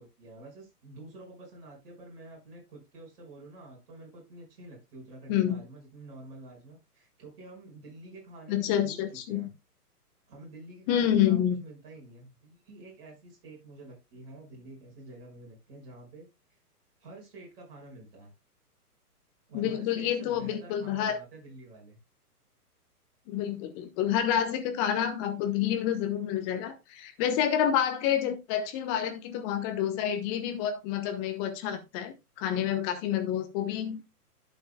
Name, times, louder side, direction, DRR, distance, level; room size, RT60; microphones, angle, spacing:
voice 1, 0.0-9.0 9.3-9.5 10.3-16.3 17.0-18.3 19.5-22.0, right 2 dB, 40° right, -1 dB, 6.0 m, -48 dB
voice 2, 5.3-5.6 8.5-9.5 10.9-11.6 19.5-21.2 23.3-34.0, left 10 dB, 20° left, 8 dB, 0.9 m, -28 dB
11.5 x 8.1 x 2.2 m, 0.23 s
figure-of-eight pair, 120°, 46 cm